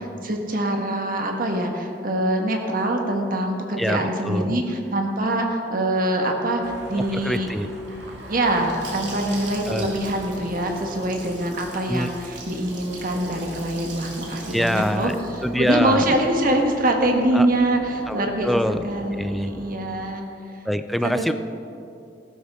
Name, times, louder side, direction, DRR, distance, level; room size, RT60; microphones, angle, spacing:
voice 1, 0.2-6.6 6.9-7.5 8.3-15.1 15.5-18.5 18.8-20.2 21.0-21.3, right 1 dB, 50° right, 2 dB, 1.5 m, -24 dB
voice 2, 3.8-4.6 7.1-7.7 9.7-10.0 11.9-12.1 14.5-15.1 15.4-16.1 17.3-17.5 18.1-18.9 19.1-19.5 20.7-21.3, equal, ahead, 10 dB, 0.3 m, -25 dB
sound 1, 6.6-19.8, equal, 75° right, 1.8 m, -41 dB
Gurgling / Sink (filling or washing) / Bathtub (filling or washing), 7.9-17.7, right 2 dB, 90° right, 2.7 m, -41 dB
15.0 x 12.5 x 3.6 m, 2.6 s
head